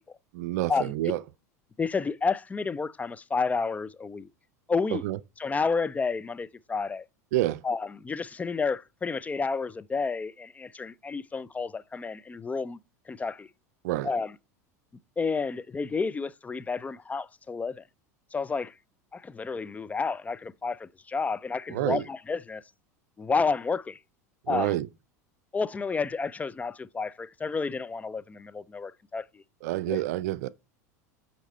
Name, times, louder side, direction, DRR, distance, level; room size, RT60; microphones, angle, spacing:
voice 1, 0.3-1.2 4.9-5.2 7.3-7.6 13.8-14.1 21.7-22.0 24.5-24.9 29.6-30.5, right 15 dB, 70° right, 0.4 m, -28 dB
voice 2, 1.8-4.3 4.7-5.0 5.4-7.0 7.6-12.8 13.1-13.5 14.0-14.3 15.2-17.8 18.3-18.7 19.1-22.6 23.2-24.0 24.5-24.7 25.5-29.4 29.9-30.0, left 4 dB, 15° left, 0.4 m, -30 dB
8.1 x 4.3 x 4.2 m
hypercardioid pair, 85°, 9 cm